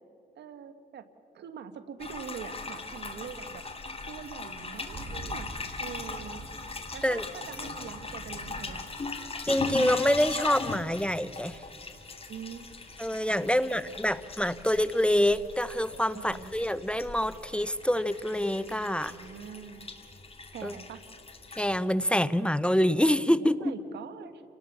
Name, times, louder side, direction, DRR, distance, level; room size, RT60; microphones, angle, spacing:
voice 1, 0.3-1.0 1.3-3.6 4.1-5.5 5.8-6.4 6.9-8.8 12.3-12.7 13.5-13.9 16.1-16.5 18.9-19.9 20.5-21.0 23.4-24.4, right 7 dB, 80° right, 11 dB, 1.5 m, -43 dB
sound 1, 2.0-21.8, left 3 dB, 35° left, 2.6 m, -39 dB
sound 2, 4.8-19.5, right 2 dB, 60° right, 3.8 m, -50 dB
voice 2, 9.5-11.6 13.0-19.1 20.6-20.7 21.5-23.7, left 1 dB, 5° left, 15 dB, 0.8 m, -26 dB
30.0 x 18.5 x 7.2 m, 2.6 s
cardioid pair, 65°, 17 cm